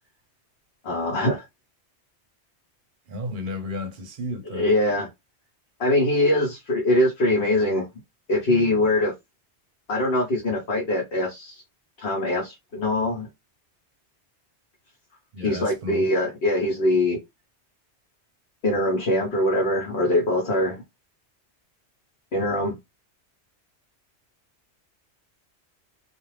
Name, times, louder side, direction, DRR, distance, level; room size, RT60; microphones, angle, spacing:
voice 1, 0.8-1.5 4.5-5.1 5.8-7.9 8.3-9.1 9.9-11.6 12.0-13.3 15.4-17.2 18.6-20.8 22.3-22.8, left 1 dB, 60° left, 1.1 m, -23 dB
voice 2, 3.1-4.7 15.3-16.1, left 1 dB, 55° right, 0.8 m, -33 dB
2.4 x 2.4 x 3.1 m
omnidirectional pair, 1.2 m